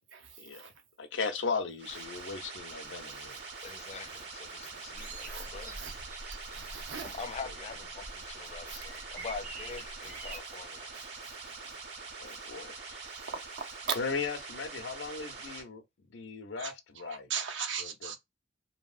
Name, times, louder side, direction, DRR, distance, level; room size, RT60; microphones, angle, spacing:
voice 1, 0.1-0.7 3.9-4.0 4.6-4.8 5.2-5.9 6.5-7.2 8.7-8.8 10.3-10.4 10.9-11.1 11.6-11.8 13.3-13.6 16.6-18.2, right 6 dB, 80° right, 0.7 m, -40 dB
voice 2, 1.0-3.4 4.9-5.0 6.5-6.6 12.2-12.7 14.0-15.8 16.1-17.3 17.8-18.2, left 4 dB, 80° left, 0.6 m, -37 dB
sound 1, 1.8-15.6, right 4 dB, 65° right, 1.4 m, -44 dB
voice 3, 3.6-5.8 7.0-10.9 12.5-13.1, left 5 dB, 35° left, 0.4 m, -44 dB
sound 2, 4.9-10.4, right 2 dB, 45° right, 0.7 m, -46 dB
2.8 x 2.7 x 2.4 m
head